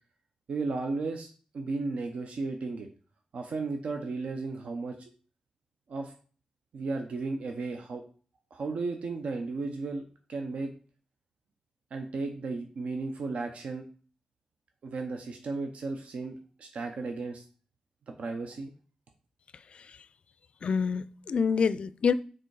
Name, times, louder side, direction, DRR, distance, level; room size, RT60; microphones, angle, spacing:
voice 1, 0.5-2.9 3.3-5.0 5.9-6.1 6.7-8.0 8.5-10.7 11.9-13.8 14.8-17.4 18.1-18.7, right 3 dB, 75° right, 4 dB, 0.8 m, -34 dB
voice 2, 20.6-22.1, left 6 dB, 55° left, 15 dB, 0.4 m, -27 dB
6.8 x 3.7 x 4.7 m, 0.40 s
wide cardioid pair, 175°, 2 cm